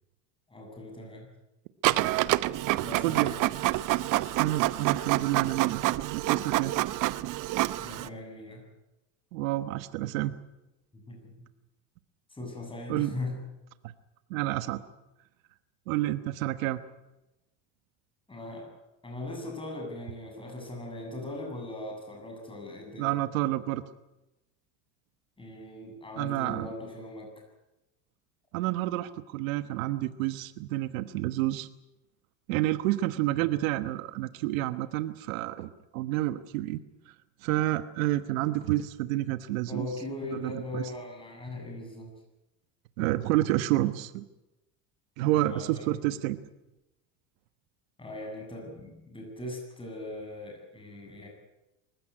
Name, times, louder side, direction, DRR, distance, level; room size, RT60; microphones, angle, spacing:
voice 1, 0.5-1.3 2.8-3.4 7.8-8.6 10.9-11.3 12.3-13.4 18.3-18.7 19.0-23.2 25.4-27.4 31.0-31.2 39.7-42.1 45.4-45.8 48.0-51.3, left 2 dB, 15° left, 1 dB, 7.7 m, -39 dB
Printer, 1.8-8.1, right 17 dB, 50° right, 0.9 m, -27 dB
voice 2, 3.0-3.3 4.4-5.8 6.1-6.7 9.3-10.4 12.9-13.2 14.3-14.8 15.9-16.8 23.0-23.8 26.2-26.7 28.5-31.7 32.5-36.8 37.1-37.2 37.4-39.9 40.3-40.8 43.0-44.2 45.2-46.4, right 16 dB, 90° right, 12 dB, 1.3 m, -29 dB
24.5 x 15.5 x 9.8 m, 0.97 s
supercardioid pair, 120°, 39 cm